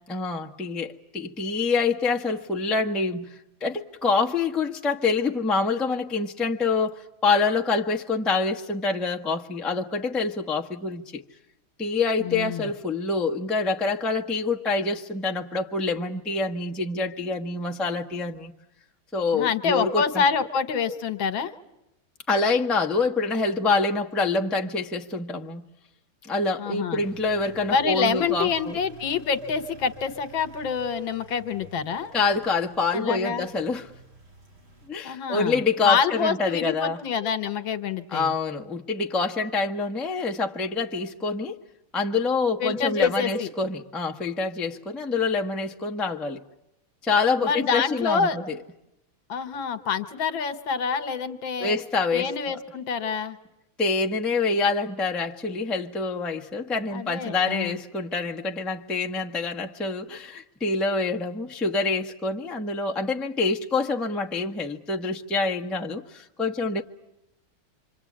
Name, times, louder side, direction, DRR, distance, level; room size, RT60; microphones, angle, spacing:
voice 1, 0.1-3.3 3.6-11.2 11.8-18.5 19.1-20.2 22.3-25.7 26.2-28.8 32.1-33.9 34.9-37.0 38.1-41.6 41.9-46.4 47.0-48.6 51.6-52.6 53.8-66.8, left 4 dB, ahead, 0.7 m, -26 dB
voice 2, 12.2-12.7 19.3-21.5 26.6-27.0 27.7-32.1 32.9-33.5 35.0-38.3 42.6-43.5 47.4-48.4 49.3-51.8 52.1-53.4 56.9-57.8, left 6 dB, 70° left, 1.9 m, -27 dB
sound 1, 27.0-34.9, right 1 dB, 70° right, 6.2 m, -49 dB
26.5 x 25.5 x 8.7 m
omnidirectional pair, 2.3 m